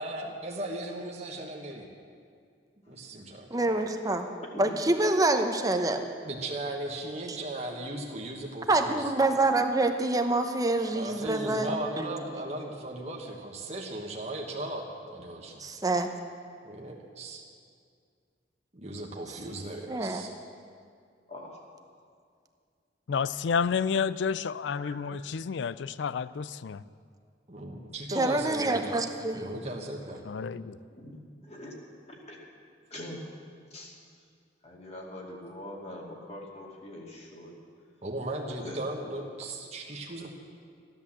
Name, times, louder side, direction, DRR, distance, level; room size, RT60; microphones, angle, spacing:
voice 1, 0.0-1.9 2.9-3.5 6.2-9.0 10.9-15.6 16.6-17.4 18.7-20.3 27.5-29.0 29.3-30.2 38.0-40.3, right 1 dB, 35° right, -1 dB, 1.4 m, -37 dB
voice 2, 2.9-3.2 4.5-4.7 21.3-21.6 24.8-25.0 30.9-31.2 31.4-31.7 32.1-32.4 32.9-33.2 33.7-33.9 34.6-37.5 38.6-38.8, left 1 dB, 35° left, -1 dB, 2.4 m, -43 dB
voice 3, 3.5-4.3 4.6-6.0 8.7-12.1 15.6-16.1 19.9-20.2 28.1-29.4, right 2 dB, 20° right, 6 dB, 1.0 m, -26 dB
voice 4, 23.1-26.8 30.3-30.8, left 6 dB, 80° left, 17 dB, 0.4 m, -30 dB
15.0 x 11.0 x 7.4 m, 2.2 s
head